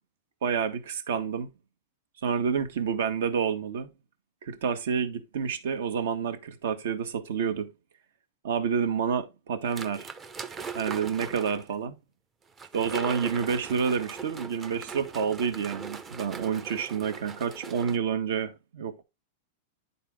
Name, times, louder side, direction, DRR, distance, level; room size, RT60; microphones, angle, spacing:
voice 1, 0.4-1.6 2.2-3.9 4.4-7.7 8.4-10.1 10.7-12.0 12.7-19.0, right 7 dB, 75° right, 1.4 m, -29 dB
sound 1, 9.7-11.7 12.6-18.0, right 5 dB, 15° right, 0.5 m, -40 dB
10.0 x 4.3 x 3.5 m
supercardioid pair, 165°, 0 cm